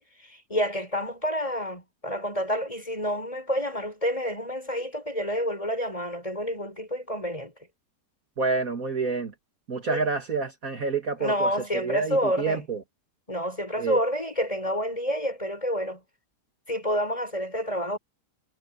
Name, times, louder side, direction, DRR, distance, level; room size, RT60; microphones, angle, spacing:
voice 1, 0.0-7.5 9.9-10.1 11.2-12.6 13.3-16.0 16.7-18.0, equal, 20° left, 6.1 m, -29 dB
voice 2, 8.4-9.3 9.7-12.8 13.8-14.0, right 4 dB, 50° right, 2.4 m, -28 dB
omnidirectional pair, 1.9 m